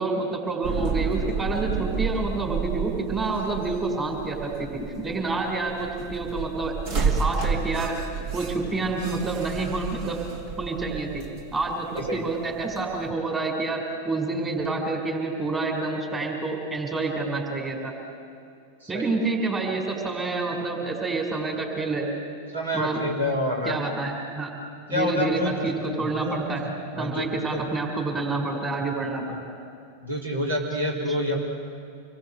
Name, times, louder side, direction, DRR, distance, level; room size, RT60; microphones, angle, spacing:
voice 1, 0.0-8.0 8.3-10.2 10.6-11.2 11.5-17.9 18.9-22.1 22.7-23.0 23.6-24.5 24.9-26.6 27.0-29.5 31.1-31.2, right 3 dB, 20° right, 2 dB, 5.1 m, -28 dB
sound 1, 0.6-13.1, right 5 dB, 50° right, 2.8 m, -31 dB
voice 2, 18.8-19.2 22.5-23.8 24.9-25.7 26.0-26.6 26.9-27.2 27.5-27.6 30.0-31.3, left 1 dB, 75° right, -1 dB, 4.0 m, -27 dB
27.0 x 22.0 x 8.1 m, 2.5 s
figure-of-eight pair, 90°, 0 cm